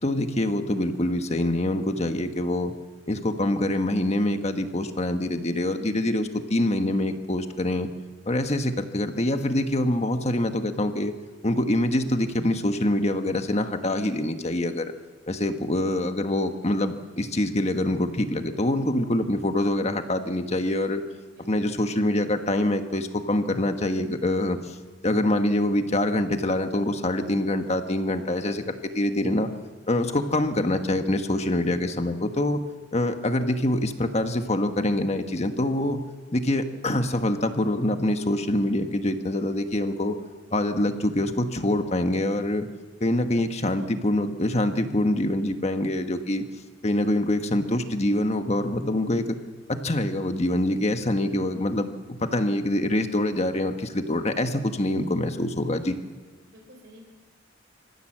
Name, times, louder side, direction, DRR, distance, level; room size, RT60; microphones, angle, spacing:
voice 1, 0.0-2.7 3.1-7.9 8.3-11.1 11.4-14.9 15.3-21.0 21.4-24.8 25.0-29.5 29.9-32.6 32.9-36.0 36.3-40.1 40.5-42.7 43.0-46.5 46.8-49.4 49.7-55.9, left 1 dB, 35° left, 7 dB, 1.4 m, -25 dB
voice 2, 21.3-21.8 30.1-30.5 56.5-57.1, equal, 65° right, 2 dB, 4.6 m, -52 dB
26.0 x 15.0 x 7.5 m, 1.3 s
head